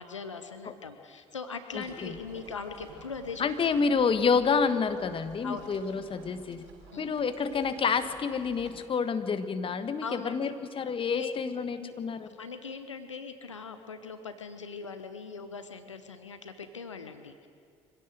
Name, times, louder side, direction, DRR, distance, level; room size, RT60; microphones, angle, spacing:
voice 1, 0.0-3.5 5.4-5.7 6.9-7.1 10.0-10.5 11.1-11.3 11.8-11.9 12.3-17.5, left 5 dB, 85° left, 8 dB, 0.8 m, -40 dB
voice 2, 1.7-2.2 3.4-6.6 7.0-12.3, left 5 dB, 35° left, 10 dB, 1.5 m, -28 dB
sound 1, 1.7-8.8, right 4 dB, 65° right, 5.9 m, -52 dB
25.0 x 16.5 x 6.7 m, 2.3 s
figure-of-eight pair, 55°, 15 cm